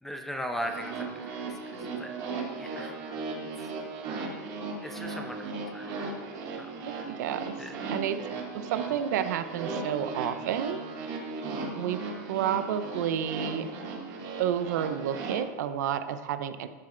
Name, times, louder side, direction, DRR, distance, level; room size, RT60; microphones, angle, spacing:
voice 1, 0.0-2.1 2.6-3.0 3.6-3.7 4.8-5.9 6.6-6.8 7.6-7.7, equal, 5° left, 4 dB, 0.8 m, -38 dB
sound 1, 0.6-15.3, right 3 dB, 40° right, 2.8 m, -37 dB
voice 2, 7.2-7.6 7.9-8.2 8.5-10.8 11.8-13.7 14.4-16.7, right 9 dB, 75° right, 10 dB, 0.8 m, -30 dB
12.0 x 7.5 x 3.9 m, 1.6 s
supercardioid pair, 150°, 10 cm